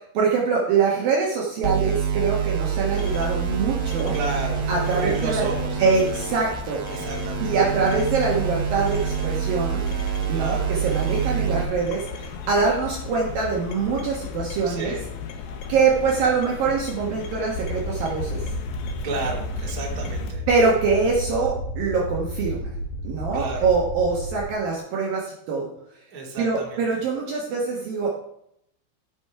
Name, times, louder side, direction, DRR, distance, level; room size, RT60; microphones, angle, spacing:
voice 1, 0.1-4.2 4.7-5.5 5.8-7.1 7.4-9.9 10.3-14.9 15.7-18.4 20.5-22.7 23.0-25.7 26.4-28.1, right 4 dB, 60° right, -3 dB, 2.6 m, -24 dB
sound 1, 1.6-11.6, right 7 dB, 85° right, 1.7 m, -27 dB
sound 2, 3.0-20.3, left 4 dB, 80° left, 2.1 m, -35 dB
voice 2, 4.1-5.8 6.9-7.5 10.3-10.7 14.6-15.1 19.0-20.4 23.3-23.7 26.1-26.8, right 3 dB, 30° right, -2 dB, 1.9 m, -32 dB
sound 3, 17.6-24.5, right 1 dB, 60° left, 3.0 m, -32 dB
15.0 x 6.5 x 4.7 m, 0.76 s
omnidirectional pair, 5.6 m